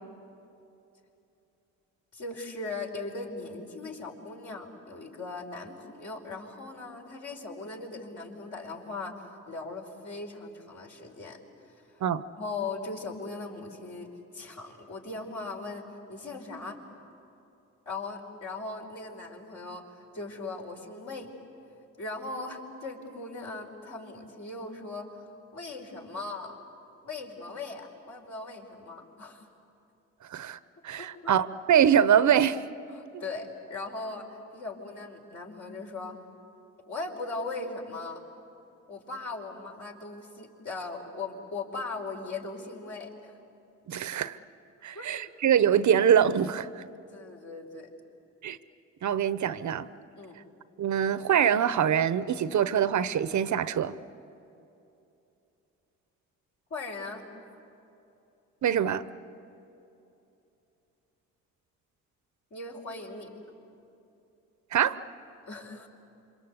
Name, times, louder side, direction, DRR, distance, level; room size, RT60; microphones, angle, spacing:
voice 1, 2.1-12.0 12.4-14.1 14.3-16.8 17.8-21.3 22.0-25.3 25.5-26.6 27.0-29.5 31.0-31.3 32.9-36.2 36.9-38.2 38.9-43.4 44.9-45.1 46.9-47.9 50.1-50.4 56.7-57.2 62.5-63.4 65.5-65.9, left 3 dB, 55° left, 0 dB, 5.1 m, -39 dB
voice 2, 30.8-32.6 43.9-44.4 44.8-46.8 48.4-48.6 49.0-49.9 50.8-53.9 58.6-59.0 64.7-65.0, right 9 dB, 55° right, 14 dB, 0.9 m, -24 dB
27.5 x 25.0 x 8.2 m, 2.9 s
supercardioid pair, 55°, 35 cm